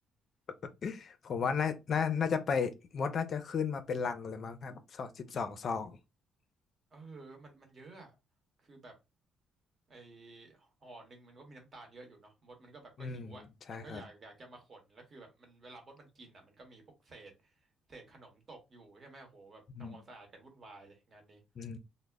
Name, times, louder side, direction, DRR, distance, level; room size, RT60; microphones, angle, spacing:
voice 1, 0.8-6.0 13.0-13.4 13.7-14.0 19.8-20.0 21.6-21.8, left 6 dB, 45° left, 0.4 m, -34 dB
voice 2, 6.9-8.1 8.6-8.9 9.9-21.4, right 3 dB, 35° right, 1.0 m, -53 dB
2.0 x 2.0 x 3.4 m
cardioid pair, 120°, 0 cm